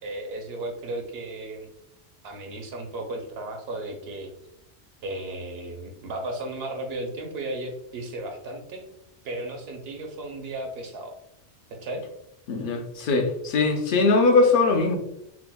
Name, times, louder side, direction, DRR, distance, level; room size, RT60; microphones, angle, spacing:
voice 1, 0.0-1.7 2.2-4.3 5.0-8.8 9.2-11.1 11.8-12.0, right 2 dB, 65° right, 3 dB, 0.8 m, -34 dB
voice 2, 12.5-15.0, left 3 dB, 55° left, 4 dB, 0.7 m, -21 dB
6.0 x 2.0 x 2.2 m, 0.80 s
omnidirectional pair, 1.2 m